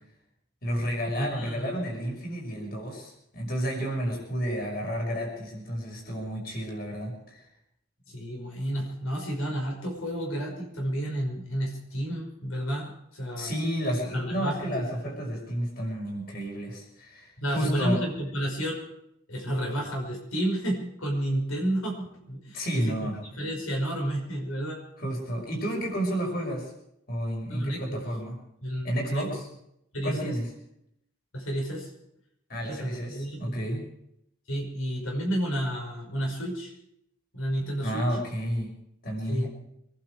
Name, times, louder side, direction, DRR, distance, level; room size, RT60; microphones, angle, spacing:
voice 1, 0.6-7.5 13.4-18.0 22.5-23.2 25.0-26.7 27.1-28.4 28.8-29.5 30.0-30.5 32.5-33.8 37.8-38.7 39.0-39.5, equal, 45° left, 0 dB, 5.8 m, -31 dB
voice 2, 1.2-1.7 8.1-13.5 14.1-14.8 17.4-18.8 19.3-24.8 27.5-28.0 28.6-29.2 29.9-30.3 31.3-31.9 32.7-33.6 34.5-36.7 37.3-38.0 39.3-39.5, right 1 dB, 85° left, 0 dB, 5.7 m, -31 dB
25.0 x 11.5 x 4.9 m, 0.76 s
head